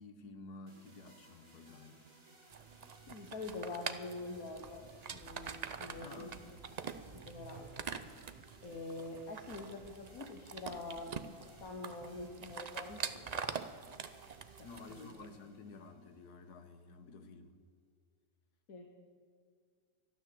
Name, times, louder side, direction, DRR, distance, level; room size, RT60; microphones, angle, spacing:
voice 1, 0.0-2.1 6.0-6.8 14.6-17.5, left 3 dB, 80° left, 1.7 m, -52 dB
sound 1, 0.7-16.7, right 2 dB, 40° right, 2.4 m, -62 dB
sound 2, 2.5-15.3, right 6 dB, 80° right, 0.3 m, -45 dB
voice 2, 3.1-6.3 7.1-7.7 8.6-11.1 11.6-13.4 14.6-15.1 18.7-18.9, left 3 dB, 65° left, 1.7 m, -45 dB
12.5 x 12.0 x 7.8 m
omnidirectional pair, 1.6 m